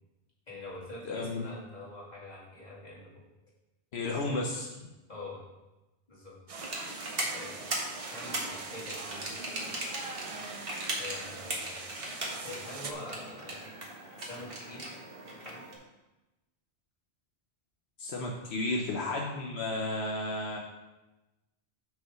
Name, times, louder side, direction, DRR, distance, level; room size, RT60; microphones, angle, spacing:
voice 1, 0.5-3.2 4.3-4.5 5.1-5.4 6.1-6.3 7.3-7.5 8.1-9.2 11.0-11.8 12.4-13.8 14.2-15.6, left 2 dB, 40° left, -6 dB, 2.5 m, -45 dB
voice 2, 1.1-1.4 3.9-4.7 18.0-20.6, left 2 dB, 85° left, 0 dB, 1.1 m, -33 dB
sound 1, 6.5-12.9, right 3 dB, 40° right, 0.6 m, -43 dB
sound 2, 6.6-15.7, right 1 dB, 60° right, 1.7 m, -38 dB
6.2 x 5.4 x 5.5 m, 1.1 s
omnidirectional pair, 1.1 m